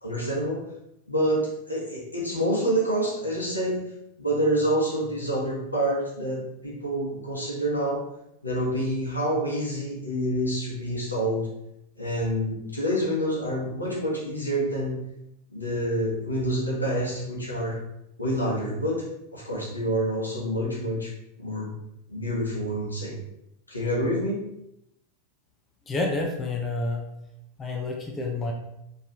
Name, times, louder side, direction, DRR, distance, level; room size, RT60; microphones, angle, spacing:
voice 1, 0.0-0.6 1.1-3.8 4.2-8.0 8.4-11.4 12.0-15.0 15.5-17.8 18.2-19.0 19.3-21.1 21.4-21.7 22.1-23.1 23.7-24.4, right 1 dB, 80° left, -4 dB, 1.3 m, -27 dB
voice 2, 25.9-27.1 27.6-28.5, left 2 dB, 20° left, 1 dB, 0.6 m, -29 dB
4.6 x 3.3 x 3.0 m, 0.84 s
figure-of-eight pair, 90°, 0 cm